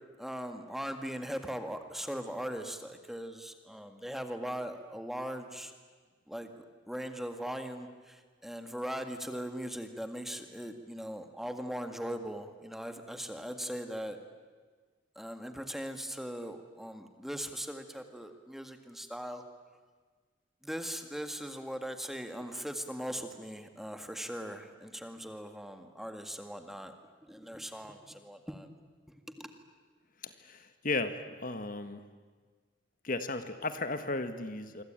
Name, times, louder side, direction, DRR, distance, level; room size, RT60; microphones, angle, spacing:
voice 1, 0.2-5.7 6.3-14.2 15.2-19.4 20.6-26.9 27.2-28.7 29.1-29.5, equal, ahead, 6 dB, 1.8 m, -40 dB
voice 2, 30.2-32.0 33.0-34.8, left 3 dB, 45° left, 9 dB, 1.5 m, -35 dB
26.5 x 25.0 x 9.0 m, 1.5 s
head